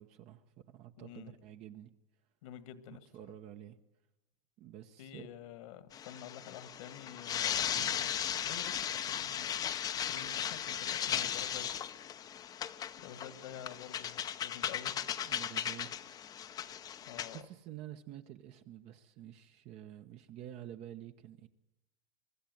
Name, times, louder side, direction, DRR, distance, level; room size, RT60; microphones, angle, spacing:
voice 1, 0.0-1.9 2.9-3.8 4.6-5.3 7.7-8.0 15.2-16.2 17.3-21.5, right 12 dB, 40° right, 0.9 m, -49 dB
voice 2, 1.0-1.3 2.4-3.1 5.0-8.1 8.4-11.7 13.0-14.9 17.1-17.5, left 10 dB, 70° left, 1.9 m, -49 dB
sound 1, 5.9-17.4, left 9 dB, 20° left, 0.7 m, -37 dB
23.5 x 13.0 x 9.3 m
supercardioid pair, 155°, 17 cm